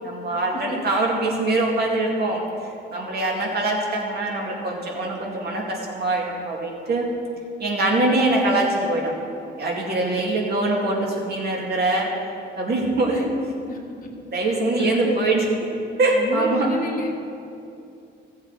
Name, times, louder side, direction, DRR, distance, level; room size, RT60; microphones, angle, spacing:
voice 1, 0.0-2.4 2.9-7.1 7.6-9.1 9.6-12.1 12.6-13.3 14.3-15.5 16.0-16.7, right 2 dB, 55° right, -1 dB, 2.3 m, -23 dB
voice 2, 9.9-10.3 13.1-13.2 13.7-13.8 14.4-15.2 16.1-17.1, left 3 dB, 45° left, -1 dB, 1.4 m, -31 dB
15.5 x 7.9 x 4.3 m, 2.6 s
cardioid pair, 90°, 20 cm